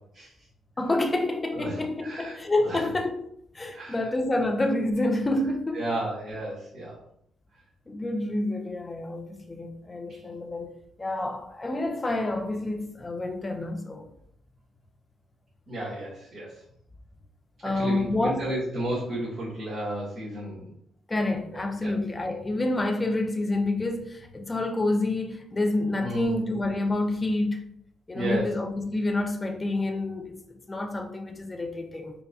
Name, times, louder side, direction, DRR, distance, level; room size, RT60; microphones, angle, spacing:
voice 1, 0.8-3.2 3.5-5.9 7.9-10.7 11.0-14.0 17.6-18.4 21.1-27.6 28.1-32.1, left 2 dB, 25° left, 0.5 m, -28 dB
voice 2, 1.5-2.8 3.7-4.1 5.7-6.9 10.1-10.2 15.7-16.5 17.7-20.7 21.8-21.9 26.0-26.4 28.1-28.5, right 1 dB, 50° right, 1.5 m, -33 dB
4.3 x 2.2 x 2.6 m
cardioid pair, 90°, 0 cm